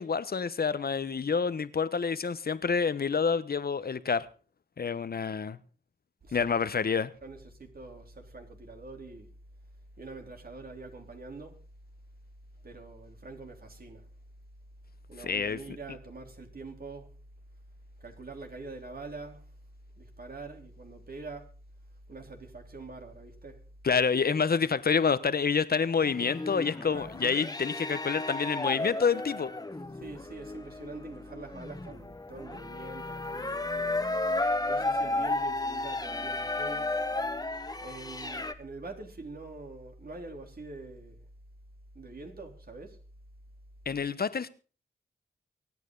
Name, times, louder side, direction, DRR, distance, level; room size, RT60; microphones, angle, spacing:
voice 1, 0.0-4.3 4.8-5.6 6.3-7.1 15.2-15.6 23.8-29.5 43.9-44.5, left 5 dB, 60° left, 1.1 m, -28 dB
voice 2, 7.2-9.3 10.0-11.6 12.6-14.1 15.1-17.1 18.0-19.5 20.0-21.5 22.1-23.6 26.9-27.1 29.9-34.1 34.7-36.9 37.8-41.3 41.9-43.0, right 3 dB, 55° right, 3.7 m, -44 dB
sound 1, 26.0-38.5, left 2 dB, 20° left, 1.6 m, -33 dB
24.0 x 9.2 x 4.0 m
cardioid pair, 55°, 18 cm